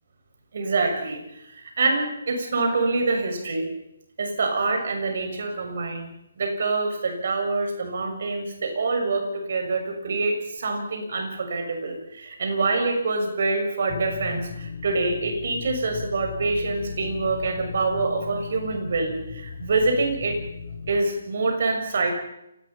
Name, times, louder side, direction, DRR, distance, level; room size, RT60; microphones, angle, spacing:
voice 1, 0.5-3.7 4.2-6.1 6.4-20.4 20.9-22.1, right 3 dB, 55° right, 4 dB, 6.7 m, -26 dB
sound 1, 13.9-21.0, left 5 dB, 50° left, 5.5 m, -37 dB
29.0 x 19.0 x 5.8 m, 0.83 s
figure-of-eight pair, 145°, 0 cm